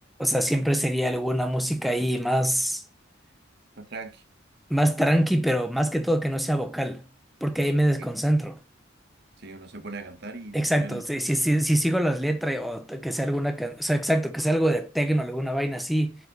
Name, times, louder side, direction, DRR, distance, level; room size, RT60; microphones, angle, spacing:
voice 1, 0.2-2.8 4.7-7.0 7.4-8.6 10.5-16.2, equal, ahead, 0.8 m, -24 dB
voice 2, 3.8-4.2 9.4-11.0, right 3 dB, 60° right, 1.4 m, -39 dB
8.1 x 5.1 x 6.8 m
head